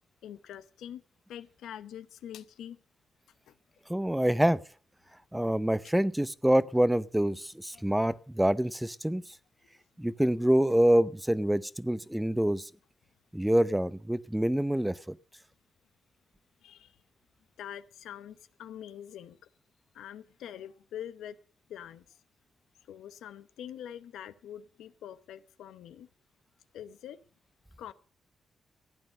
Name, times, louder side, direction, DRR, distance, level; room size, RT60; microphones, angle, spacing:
voice 1, 0.2-1.0 1.3-2.8 3.5-3.6 7.7-8.1 16.6-17.0 17.6-19.4 19.9-21.4 21.7-22.2 22.8-26.1 26.7-27.2 27.8-27.9, left 10 dB, 85° left, 13 dB, 0.8 m, -44 dB
voice 2, 3.9-4.6 5.3-9.4 10.0-12.7 13.3-15.1, right 1 dB, 5° right, 17 dB, 0.7 m, -26 dB
15.5 x 9.0 x 6.5 m, 0.41 s
supercardioid pair, 55°, 0 cm